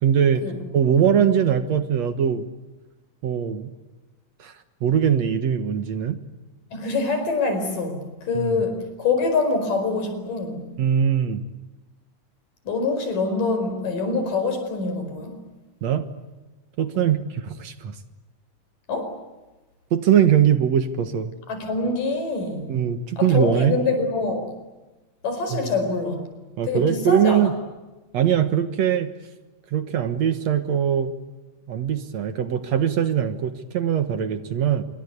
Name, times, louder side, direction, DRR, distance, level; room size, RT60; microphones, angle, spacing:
voice 1, 0.0-0.4 0.7-2.5 3.2-3.7 4.4-4.5 4.8-6.2 8.3-8.6 10.8-11.4 15.8-16.1 16.8-18.0 19.9-21.3 22.7-23.8 25.5-25.7 26.6-27.5 28.1-29.1 29.7-31.1 31.7-34.8, right 8 dB, 60° right, 10 dB, 2.4 m, -21 dB
voice 2, 6.7-10.7 12.6-15.4 16.9-17.1 18.9-19.1 21.5-22.7 23.2-24.5 25.2-26.2 26.6-27.5, left 3 dB, 75° left, 7 dB, 6.4 m, -25 dB
27.0 x 23.5 x 8.3 m, 1.1 s
omnidirectional pair, 3.8 m